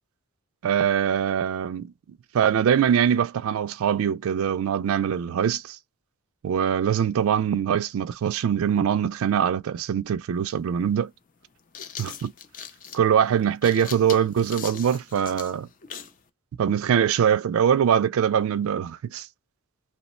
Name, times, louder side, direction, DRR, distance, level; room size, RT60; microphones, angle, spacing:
voice 1, 0.6-1.9 2.3-5.8 6.4-11.1 12.0-12.3 12.9-15.7 16.6-19.3, right 8 dB, 65° right, 0.3 m, -23 dB
sound 1, 10.4-10.5 11.4-16.2, left 7 dB, 35° left, 0.4 m, -40 dB
2.9 x 2.1 x 4.1 m
head